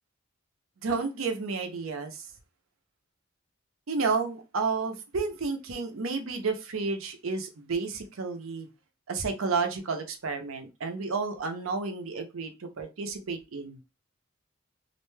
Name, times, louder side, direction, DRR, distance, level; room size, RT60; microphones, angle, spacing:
voice 1, 0.8-2.3 3.9-8.7 9.1-13.8, right 4 dB, 85° right, 0.6 m, -31 dB
2.5 x 2.2 x 3.1 m
head